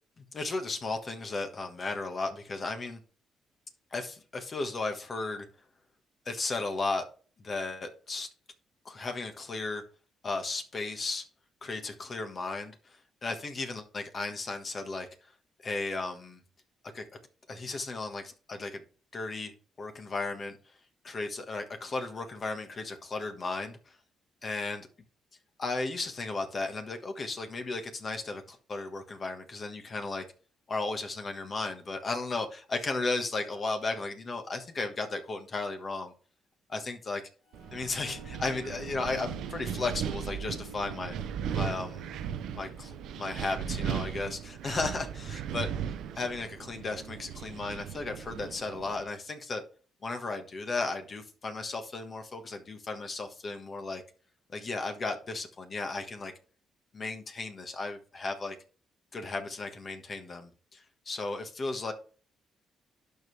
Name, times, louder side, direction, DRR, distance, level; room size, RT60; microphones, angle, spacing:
voice 1, 0.2-3.0 3.9-5.5 6.2-7.0 7.4-8.3 8.8-9.8 10.2-11.2 11.6-15.1 15.6-16.4 16.9-17.0 17.5-18.8 19.1-19.5 19.8-20.6 21.0-24.0 24.4-24.9 25.6-30.2 30.7-36.1 36.7-37.2 37.7-41.1 41.5-42.1 42.6-45.7 46.1-49.6 50.0-54.0 54.5-56.3 56.9-58.6 59.1-61.9, left 3 dB, 40° left, 1.4 m, -35 dB
sound 1, 37.5-44.9, left 1 dB, 60° left, 4.6 m, -53 dB
Wind, 37.5-49.0, right 8 dB, 80° right, 0.7 m, -37 dB
11.5 x 4.8 x 3.3 m
cardioid pair, 90°, 0 cm